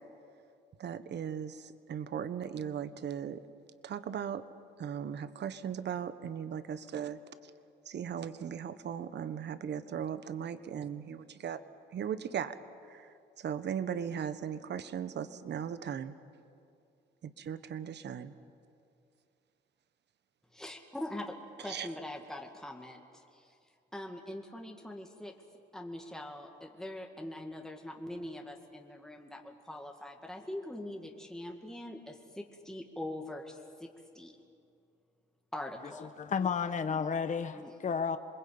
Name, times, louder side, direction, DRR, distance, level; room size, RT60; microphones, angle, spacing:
voice 1, 0.8-3.4 3.8-4.4 4.8-7.2 7.9-11.6 11.9-12.6 12.9-13.1 13.4-16.1 17.2-18.3 21.7-21.9, right 8 dB, 60° right, 12 dB, 1.3 m, -37 dB
voice 2, 20.5-23.5 23.9-25.3 25.7-34.4 35.5-36.2 37.5-37.7, left 1 dB, 5° left, 1 dB, 2.2 m, -43 dB
voice 3, 36.2-38.2, left 6 dB, 40° left, 9 dB, 1.0 m, -32 dB
27.0 x 21.0 x 8.8 m, 2.5 s
cardioid pair, 90°, 20 cm